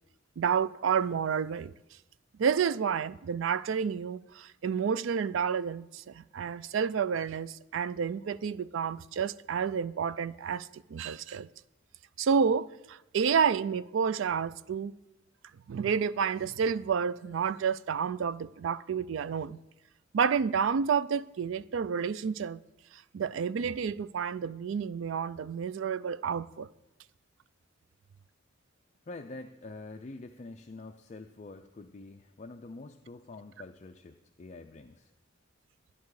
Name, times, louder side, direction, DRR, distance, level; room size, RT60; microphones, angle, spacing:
voice 1, 0.4-1.7 2.4-11.5 12.2-14.9 15.7-19.6 20.1-22.6 23.1-26.7, right 6 dB, 65° right, 0.4 m, -30 dB
voice 2, 29.1-35.1, left 3 dB, 35° left, 0.4 m, -46 dB
12.5 x 10.5 x 4.8 m
head